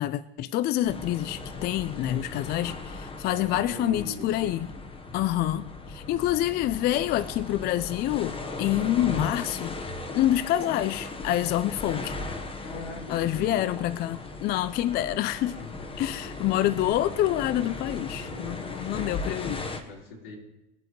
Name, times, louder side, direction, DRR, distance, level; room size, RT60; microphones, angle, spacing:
voice 1, 0.0-4.7 5.1-9.8 10.1-12.2 13.1-15.6 16.0-19.6, left 13 dB, 35° left, 17 dB, 0.4 m, -27 dB
sound 1, 0.8-19.8, left 3 dB, 20° left, 1.2 m, -37 dB
voice 2, 3.3-4.5 12.6-13.7 15.5-16.1 18.2-19.5 19.8-20.3, left 2 dB, 85° left, -2 dB, 4.3 m, -41 dB
21.5 x 7.8 x 3.2 m, 0.97 s
supercardioid pair, 120°, 29 cm